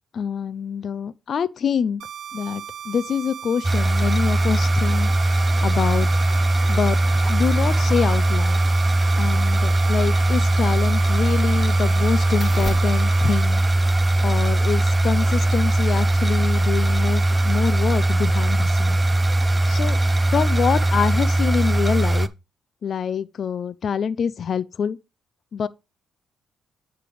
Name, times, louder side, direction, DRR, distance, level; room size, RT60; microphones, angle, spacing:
voice 1, 0.1-2.0 2.3-6.1 6.7-7.0 7.3-8.6 9.2-13.6 14.2-19.0 19.7-20.0 20.3-22.3 22.8-25.0 25.5-25.7, left 7 dB, 55° left, 0.4 m, -25 dB
sound 1, 2.0-13.4, right 9 dB, 75° right, 0.6 m, -37 dB
sound 2, 3.6-22.3, right 2 dB, 20° right, 0.5 m, -20 dB
sound 3, 9.6-17.1, equal, ahead, 2.2 m, -41 dB
8.8 x 3.3 x 4.8 m
cardioid pair, 90°, 0 cm